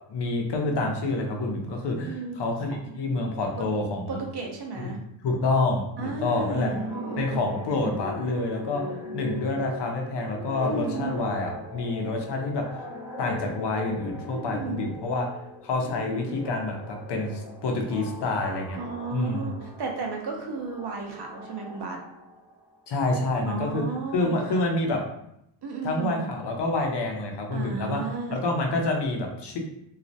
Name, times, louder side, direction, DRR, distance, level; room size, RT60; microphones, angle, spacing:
voice 1, 0.1-4.2 5.2-6.7 7.2-8.8 9.1-12.6 13.2-15.3 15.6-18.8 19.1-19.5 22.9-23.8 24.1-25.0 25.8-28.0 28.3-29.6, left 2 dB, 55° left, 2 dB, 0.7 m, -27 dB
voice 2, 2.0-2.8 3.6-3.7 4.1-5.0 6.0-7.6 8.8-9.4 10.6-11.3 14.3-14.9 18.7-22.0 23.5-24.6 25.6-26.3 27.5-28.4, right 4 dB, 55° right, 1 dB, 0.7 m, -34 dB
sound 1, 6.4-22.7, left 1 dB, 10° right, 0.8 m, -40 dB
2.4 x 2.0 x 2.6 m, 0.77 s
cardioid pair, 70°, 48 cm